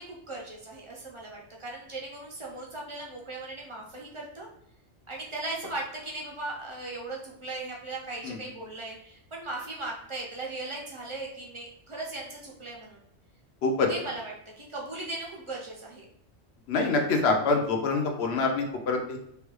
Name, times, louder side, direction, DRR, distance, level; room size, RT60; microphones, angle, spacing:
voice 1, 0.0-4.5 5.1-13.0 13.9-16.1, right 2 dB, 40° right, -2 dB, 0.4 m, -38 dB
voice 2, 16.7-19.2, left 3 dB, 70° left, 3 dB, 0.8 m, -25 dB
3.3 x 2.2 x 3.0 m, 0.74 s
omnidirectional pair, 1.2 m